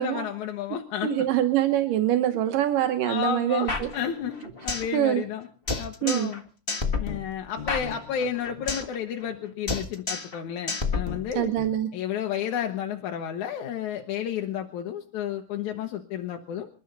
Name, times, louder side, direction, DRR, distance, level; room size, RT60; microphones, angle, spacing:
voice 1, 0.0-1.3 2.3-2.4 2.8-5.5 5.8-6.4 7.0-11.5 11.9-16.7, left 9 dB, 70° left, 3 dB, 2.4 m, -32 dB
voice 2, 1.0-3.9 4.9-5.2 6.0-6.3 11.4-11.9, right 12 dB, 85° right, 8 dB, 2.7 m, -24 dB
sound 1, 3.7-5.0 5.2-5.3 5.7-6.4 6.7-9.0 9.2-9.4 9.7-10.4 10.7-11.7, left 4 dB, 40° left, 0.8 m, -30 dB
27.5 x 12.5 x 4.0 m, 0.40 s
omnidirectional pair, 3.8 m